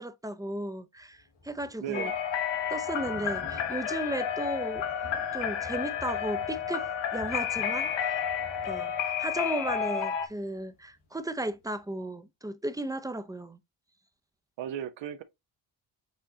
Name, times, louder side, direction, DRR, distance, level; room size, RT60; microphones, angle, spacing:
voice 1, 0.0-2.1 2.7-8.2 8.6-13.6, right 1 dB, 10° right, 0.5 m, -35 dB
Thunder / Rain, 1.1-11.1 11.4-11.7, left 3 dB, 85° left, 2.8 m, -51 dB
voice 2, 1.8-2.2 14.6-15.2, right 9 dB, 70° right, 0.8 m, -35 dB
sound 1, 1.9-10.3, left 8 dB, 65° left, 1.0 m, -31 dB
6.8 x 2.6 x 2.7 m
supercardioid pair, 60°, 47 cm